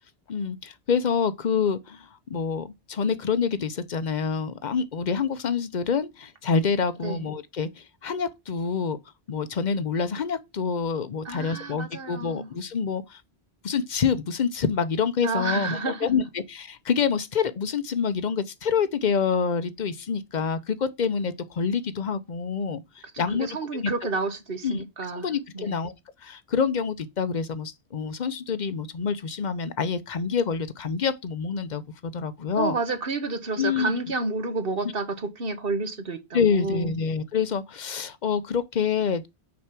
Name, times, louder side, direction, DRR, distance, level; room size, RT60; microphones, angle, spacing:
voice 1, 0.3-9.0 9.3-13.2 13.6-23.5 23.8-23.9 24.6-24.8 25.1-25.9 26.2-32.8 33.6-34.0 36.3-39.3, left 6 dB, 50° left, 0.7 m, -27 dB
voice 2, 11.2-12.5 15.2-16.1 23.1-25.3 25.5-25.8 32.5-36.9, right 3 dB, 55° right, 1.4 m, -30 dB
6.0 x 4.7 x 5.9 m
omnidirectional pair, 1.1 m